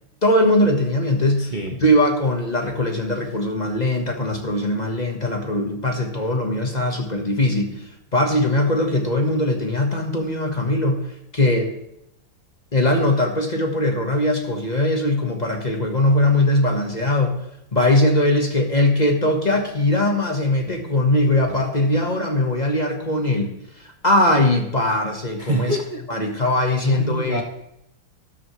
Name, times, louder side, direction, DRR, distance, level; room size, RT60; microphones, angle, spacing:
voice 1, 0.2-11.0 11.3-11.7 12.7-17.4 17.7-25.8 26.1-27.4, left 1 dB, 25° left, 2 dB, 1.1 m, -20 dB
voice 2, 1.4-1.8 25.4-26.4 26.8-27.4, right 2 dB, 55° right, 2 dB, 0.5 m, -27 dB
13.0 x 12.5 x 3.1 m, 0.80 s
omnidirectional pair, 2.2 m